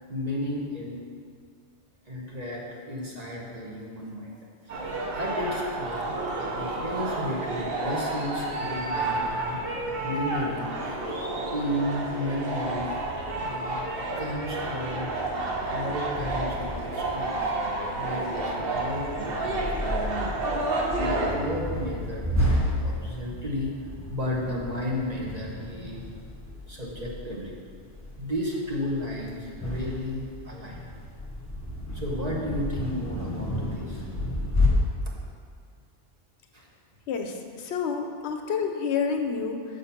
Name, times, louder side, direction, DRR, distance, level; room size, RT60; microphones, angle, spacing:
voice 1, 0.1-1.0 2.1-4.4 4.7-4.8 5.1-10.9 11.4-13.0 13.3-13.8 14.2-15.1 15.6-17.6 17.9-20.4 21.0-23.7 24.1-26.0 26.7-27.5 28.2-30.9 31.9-34.1 36.5-36.7, left 1 dB, 35° right, -3 dB, 1.1 m, -33 dB
sound 1, 4.7-21.3, right 2 dB, 55° right, 1.1 m, -30 dB
sound 2, 16.1-34.7, left 1 dB, 15° left, 1.1 m, -32 dB
voice 2, 37.1-39.8, left 6 dB, 70° left, 4 dB, 0.9 m, -29 dB
6.5 x 5.1 x 5.7 m, 2.2 s
omnidirectional pair, 1.2 m